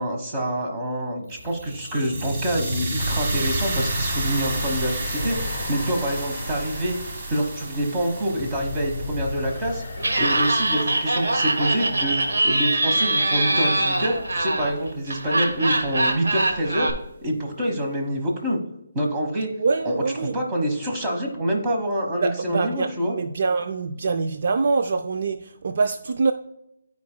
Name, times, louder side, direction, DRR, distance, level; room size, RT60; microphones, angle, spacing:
voice 1, 0.0-7.0 7.3-9.8 10.2-12.2 12.4-16.9 17.2-18.6 18.9-19.5 19.8-23.2, right 1 dB, 15° right, 1.1 m, -26 dB
sound 1, 1.3-11.4, right 1 dB, 35° right, 1.4 m, -30 dB
sound 2, 5.1-12.4, left 3 dB, 50° left, 0.6 m, -37 dB
Laughter, 10.0-16.9, right 2 dB, 85° right, 1.1 m, -23 dB
voice 2, 19.5-20.3 22.2-26.3, right 4 dB, 50° right, 0.3 m, -24 dB
11.5 x 4.7 x 2.2 m
hypercardioid pair, 165°, 0 cm